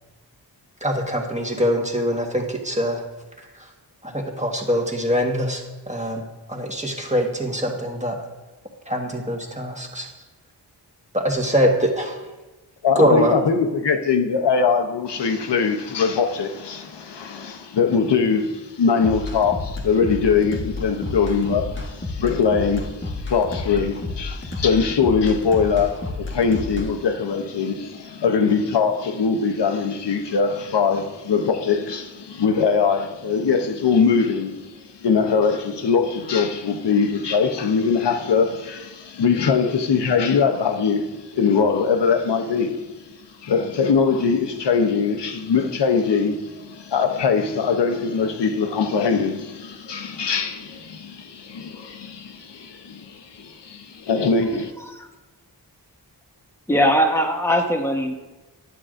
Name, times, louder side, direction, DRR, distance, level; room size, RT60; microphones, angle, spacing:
voice 1, 0.8-3.0 4.0-6.2 6.5-8.1 8.9-10.1 11.1-12.2 12.9-13.3, equal, 15° right, 1.3 m, -23 dB
voice 2, 12.8-42.9 43.4-54.7, left 5 dB, 85° left, 0.7 m, -22 dB
sound 1, 19.0-26.9, left 2 dB, 30° left, 1.0 m, -31 dB
voice 3, 56.7-58.1, equal, 5° left, 1.1 m, -20 dB
11.0 x 7.6 x 2.5 m
wide cardioid pair, 75°, 41 cm